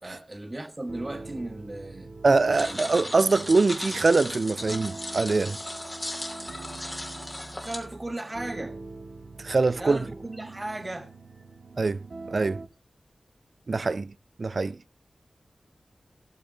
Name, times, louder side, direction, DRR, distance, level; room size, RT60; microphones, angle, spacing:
voice 1, 0.0-2.1 2.7-2.8 7.5-8.8 9.8-11.1, right 1 dB, 25° right, 1.5 m, -36 dB
sound 1, 0.9-12.7, right 3 dB, 75° right, 1.5 m, -43 dB
voice 2, 2.2-5.6 9.4-10.0 11.8-12.0 12.3-12.6 13.7-14.1 14.4-14.8, right 3 dB, 55° right, 0.5 m, -23 dB
sound 2, 2.5-7.8, left 1 dB, 20° left, 2.7 m, -36 dB
16.5 x 7.2 x 3.9 m
wide cardioid pair, 85°, 0 cm